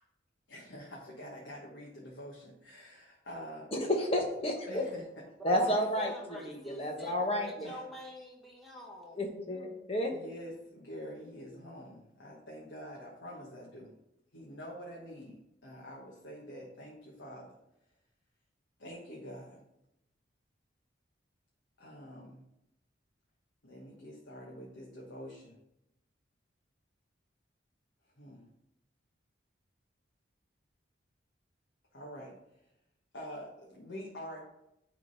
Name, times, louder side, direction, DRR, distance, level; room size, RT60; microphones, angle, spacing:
voice 1, 0.5-3.7 4.7-5.0 5.7-5.8 7.6-7.8 10.1-13.9 14.3-17.5 18.8-19.6 21.8-22.4 23.6-25.6 28.2-28.5 31.9-32.3 33.1-34.5, equal, 75° left, -3 dB, 1.3 m, -46 dB
voice 2, 3.7-4.8 5.4-6.1 6.4-7.7 9.1-10.1, left 1 dB, 30° left, 1 dB, 1.1 m, -31 dB
voice 3, 5.4-9.2, equal, ahead, -3 dB, 1.3 m, -45 dB
9.5 x 3.8 x 4.0 m, 0.84 s
head